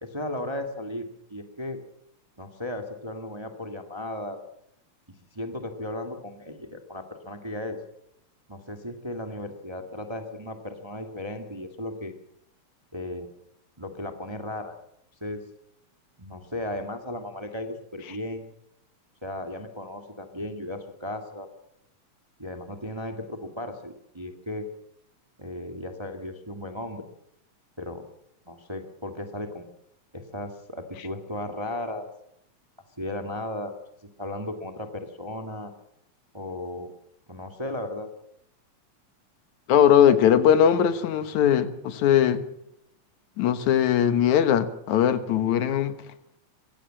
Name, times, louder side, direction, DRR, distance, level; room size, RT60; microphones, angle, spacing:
voice 1, 0.0-1.8 2.4-4.4 5.3-7.8 8.5-12.1 12.9-13.3 13.8-14.7 15.2-15.4 16.2-18.4 19.2-21.5 22.4-24.7 25.4-27.0 27.8-28.0 28.5-29.6 30.1-32.1 33.0-33.7 34.2-35.7 36.3-36.9 37.3-38.1, left 1 dB, 10° right, 6 dB, 1.4 m, -35 dB
voice 2, 39.7-42.4 43.4-45.9, left 9 dB, 75° left, 12 dB, 2.6 m, -20 dB
23.0 x 17.0 x 7.6 m, 0.75 s
omnidirectional pair, 3.4 m